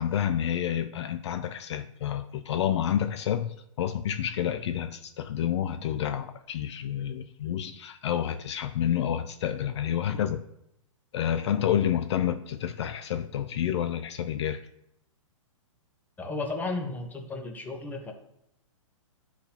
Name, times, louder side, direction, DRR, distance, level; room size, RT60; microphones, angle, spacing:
voice 1, 0.0-10.4 11.1-14.6, left 10 dB, 55° left, 0.5 m, -29 dB
voice 2, 16.2-18.1, left 3 dB, 10° left, 0.9 m, -34 dB
11.0 x 4.2 x 2.8 m
hypercardioid pair, 125°, 17 cm